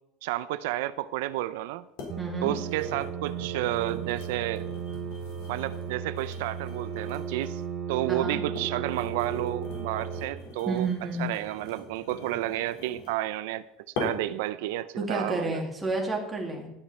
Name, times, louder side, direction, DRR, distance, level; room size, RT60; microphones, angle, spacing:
voice 1, 0.2-1.9 2.4-4.7 5.5-7.6 7.9-10.9 11.2-13.6 14.0-15.6, right 15 dB, 90° right, 14 dB, 0.5 m, -31 dB
sound 1, 1.2-1.3 2.0-2.2 2.5-7.7 8.3-13.2 14.0-14.4 14.9-15.2, left 4 dB, 75° left, 4.2 m, -42 dB
sound 2, 2.1-10.3, right 7 dB, 40° right, 1.2 m, -35 dB
voice 2, 2.2-2.6 8.1-8.4 10.7-11.3 15.0-16.7, right 2 dB, 10° right, -1 dB, 2.5 m, -30 dB
12.5 x 10.5 x 4.3 m, 0.96 s
cardioid pair, 175°, 0 cm